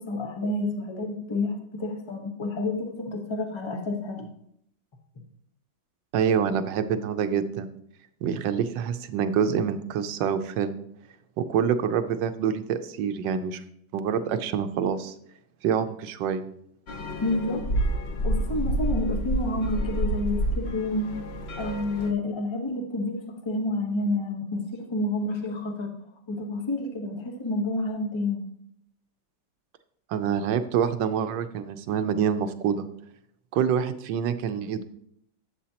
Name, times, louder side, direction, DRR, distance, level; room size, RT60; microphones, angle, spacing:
voice 1, 0.0-4.3 17.2-17.7 18.2-21.2 21.6-25.9 26.3-28.5, left 2 dB, 20° left, 2 dB, 0.9 m, -29 dB
voice 2, 6.1-7.7 8.2-10.8 11.4-13.6 13.9-15.1 15.6-16.5 30.1-32.8 33.5-34.8, right 7 dB, 80° right, 10 dB, 1.3 m, -26 dB
sound 1, 16.9-22.1, right 1 dB, 45° left, 0.8 m, -28 dB
11.5 x 7.5 x 2.9 m, 0.71 s
omnidirectional pair, 2.0 m